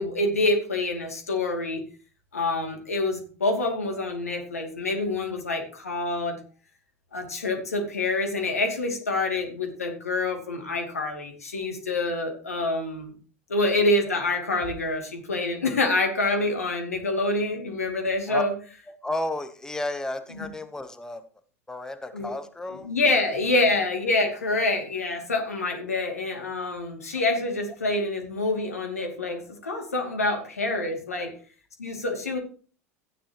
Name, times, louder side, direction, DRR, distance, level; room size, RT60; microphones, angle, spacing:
voice 1, 0.0-1.8 2.3-6.4 7.1-13.1 13.5-18.5 22.1-22.3 22.8-31.3 31.8-32.4, left 2 dB, 80° left, 3 dB, 2.5 m, -26 dB
voice 2, 18.9-21.2 21.7-22.9 31.1-31.3, left 1 dB, 10° left, 10 dB, 1.0 m, -33 dB
14.5 x 9.9 x 3.0 m, 0.39 s
figure-of-eight pair, 80°, 8 cm